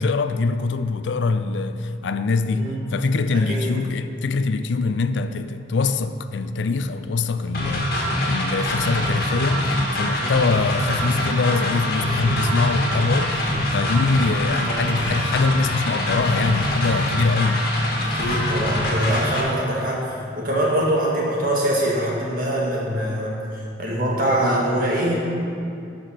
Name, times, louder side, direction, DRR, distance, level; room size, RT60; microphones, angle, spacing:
voice 1, 0.0-17.8, left 3 dB, 80° left, 0.4 m, -23 dB
voice 2, 2.5-2.8 3.5-3.7 10.2-10.4 14.5-14.8 18.0-23.4 23.8-25.2, right 1 dB, 50° right, 1.9 m, -23 dB
sound 1, 7.5-19.4, left 1 dB, 55° left, 1.7 m, -24 dB
11.5 x 5.2 x 5.8 m
head